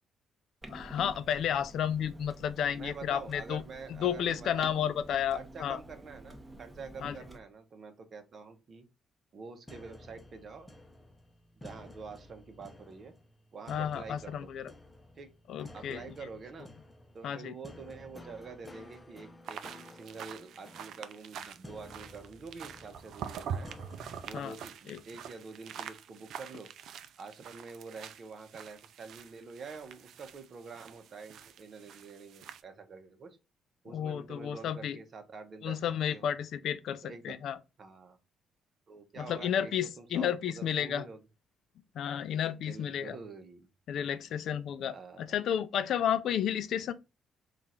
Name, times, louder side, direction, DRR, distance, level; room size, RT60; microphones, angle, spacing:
Clock, 0.6-7.4, right 1 dB, 10° right, 1.1 m, -49 dB
voice 1, 0.7-3.6 3.9-5.8 7.0-7.2 13.7-14.7 15.5-16.0 17.2-17.5 24.3-24.5 24.9-25.0 33.9-35.0 35.6-37.6 39.2-41.0 42.0-43.2 43.9-46.9, left 9 dB, 75° left, 0.4 m, -32 dB
voice 2, 2.7-4.8 5.3-8.8 9.3-10.7 11.6-13.1 13.5-14.5 15.2-15.3 15.7-16.7 17.1-19.6 19.9-23.7 24.2-26.7 27.2-33.4 33.8-36.3 37.0-37.4 37.8-38.2 38.9-41.2 42.6-43.7 44.9-45.4, right 4 dB, 50° right, 0.9 m, -47 dB
sound 1, 9.7-24.4, left 1 dB, 15° left, 0.7 m, -53 dB
sound 2, 19.4-32.6, right 8 dB, 75° right, 0.4 m, -45 dB
3.8 x 2.5 x 4.2 m
cardioid pair, 90°, 0 cm